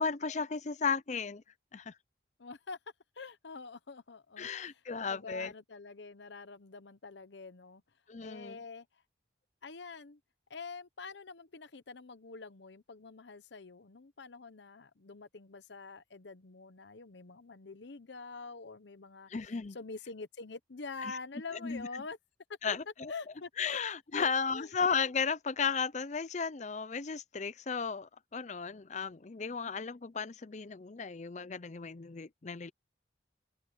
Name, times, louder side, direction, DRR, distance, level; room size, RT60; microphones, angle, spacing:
voice 1, 0.0-1.4 1.7-1.9 4.4-5.5 8.1-8.6 19.3-19.8 21.6-21.9 22.6-23.1 23.6-32.7, left 5 dB, 35° left, 0.5 m, -34 dB
voice 2, 2.4-2.8 3.2-7.8 8.2-8.9 9.6-10.2 10.5-19.3 19.7-22.2 22.7-22.8 23.1-23.8 24.1-24.7, left 4 dB, 65° left, 0.8 m, -46 dB
head